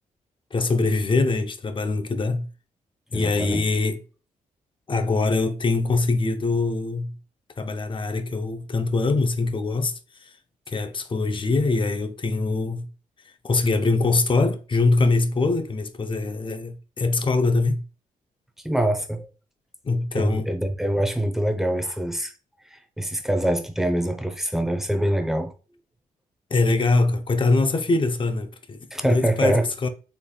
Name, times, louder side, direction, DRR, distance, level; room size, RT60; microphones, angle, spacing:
voice 1, 0.5-2.5 3.1-4.0 4.9-7.2 7.6-10.3 10.7-12.9 13.4-17.8 19.8-20.5 26.5-29.9, left 3 dB, 35° left, 0.6 m, -23 dB
voice 2, 3.1-3.6 18.6-19.3 20.1-22.3 22.6-25.5 28.9-29.7, right 1 dB, 5° right, 0.7 m, -24 dB
4.0 x 3.3 x 2.2 m
cardioid pair, 70°, 15 cm